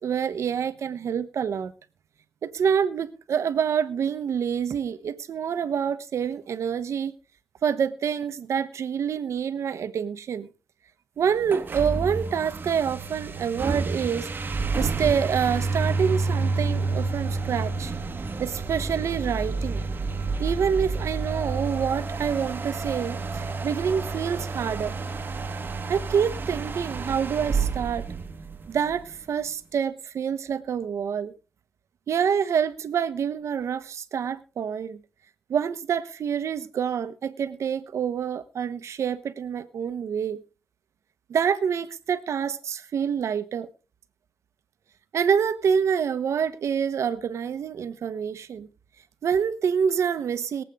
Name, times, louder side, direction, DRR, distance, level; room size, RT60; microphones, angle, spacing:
voice 1, 0.0-1.7 2.4-7.1 7.6-10.5 11.2-14.3 14.8-17.9 18.4-19.9 20.4-24.9 25.9-28.0 28.7-31.3 32.1-35.0 35.5-40.4 41.3-43.7 45.1-48.7 49.2-50.6, right 7 dB, 85° right, 1.0 m, -27 dB
sound 1, 11.4-28.9, right 4 dB, 40° right, 1.5 m, -29 dB
22.5 x 8.3 x 3.6 m
wide cardioid pair, 110°, 5 cm